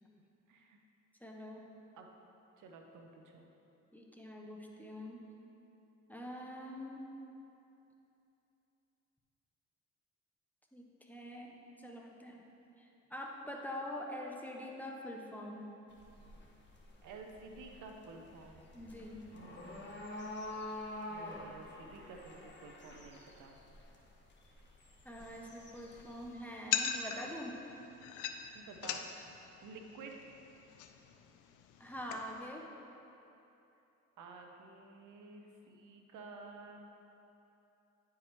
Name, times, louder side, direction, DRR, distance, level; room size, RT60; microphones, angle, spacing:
voice 1, 0.5-0.8 1.9-2.1 2.6-3.5 17.0-18.6 19.3-20.0 21.1-23.6 28.5-29.0 29.6-30.2 34.2-36.8, right 4 dB, 80° right, 3 dB, 0.7 m, -52 dB
voice 2, 1.2-1.7 3.9-5.2 6.1-7.1 10.7-12.4 12.8-15.6 18.7-19.2 25.0-27.6 31.8-32.7, left 1 dB, 5° left, -1 dB, 0.7 m, -45 dB
sound 1, 15.9-26.3, left 1 dB, 35° left, 1.2 m, -48 dB
sound 2, 25.2-32.5, left 8 dB, 90° left, 0.5 m, -42 dB
9.8 x 4.7 x 3.1 m, 2.9 s
cardioid pair, 90°, 30 cm